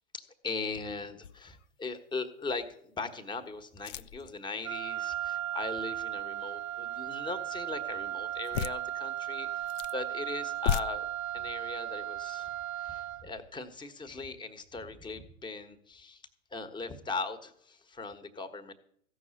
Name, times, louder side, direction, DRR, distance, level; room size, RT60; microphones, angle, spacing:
voice 1, 0.1-11.1 11.3-16.2 16.5-18.7, left 3 dB, 10° left, 11 dB, 1.2 m, -39 dB
sound 1, 1.2-1.7 2.2-2.3 3.7-4.4 8.4-8.8 9.5-10.0 10.5-10.8, left 9 dB, 60° left, 0.6 m, -33 dB
Wind instrument woodwind instrument, 4.6-13.3, right 12 dB, 70° right, 0.5 m, -36 dB
15.0 x 6.2 x 8.7 m, 0.67 s
hypercardioid pair, 115°, 43 cm